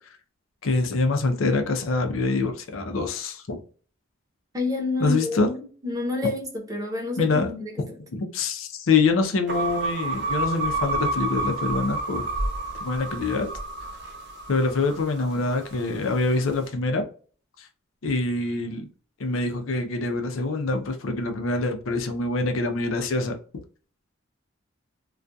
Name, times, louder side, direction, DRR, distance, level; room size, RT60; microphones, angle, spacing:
voice 1, 0.6-3.6 5.0-5.5 7.2-7.5 8.1-12.3 12.8-13.5 14.5-17.1 17.6-17.7 18.0-18.9 19.2-23.4, left 3 dB, 80° left, 0.5 m, -25 dB
voice 2, 4.5-8.0, left 3 dB, 15° right, 0.7 m, -29 dB
sound 1, 9.5-15.8, right 2 dB, 55° right, 0.7 m, -30 dB
2.3 x 2.3 x 2.6 m
head